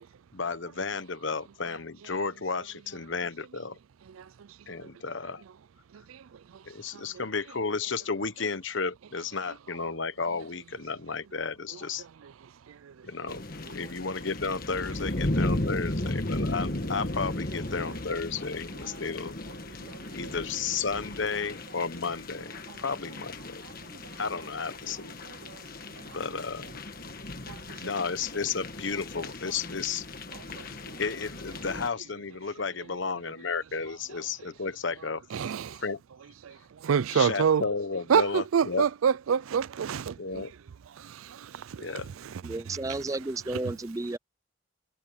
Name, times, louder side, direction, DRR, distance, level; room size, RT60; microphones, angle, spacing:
voice 1, 0.3-3.7 4.7-5.4 6.7-12.0 13.0-19.3 20.1-23.6 24.2-25.1 26.1-26.7 27.8-30.1 30.5-35.2 35.8-36.0 37.1-38.9 40.2-40.5 41.8-42.1, left 4 dB, 65° left, 1.1 m, -33 dB
voice 2, 4.1-4.5 4.8-4.9 5.9-6.4 6.9-7.0 12.2-12.3 12.7-13.1 19.8-20.3 23.9-24.0 25.4-25.6 27.5-27.8 30.3-31.0 35.3-35.8 36.4-37.6 38.1-40.4 41.0-41.9 42.2-43.0 43.5-43.8 44.1-44.2, right 7 dB, 85° right, 0.4 m, -29 dB
sound 1, 13.3-31.9, left 1 dB, 45° left, 1.6 m, -36 dB
voice 3, 42.4-44.2, right 2 dB, 15° right, 0.4 m, -32 dB
head